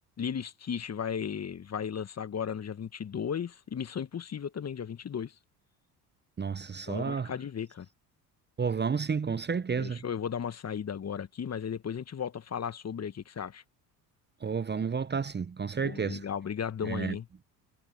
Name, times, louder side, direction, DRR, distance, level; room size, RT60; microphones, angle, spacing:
voice 1, 0.2-5.3 6.9-7.9 9.8-13.6 15.8-17.3, left 7 dB, 30° left, 1.8 m, -35 dB
voice 2, 6.4-7.3 8.6-10.0 14.4-16.2 16.8-17.2, right 6 dB, 20° right, 1.1 m, -31 dB
figure-of-eight pair, 60°, 49 cm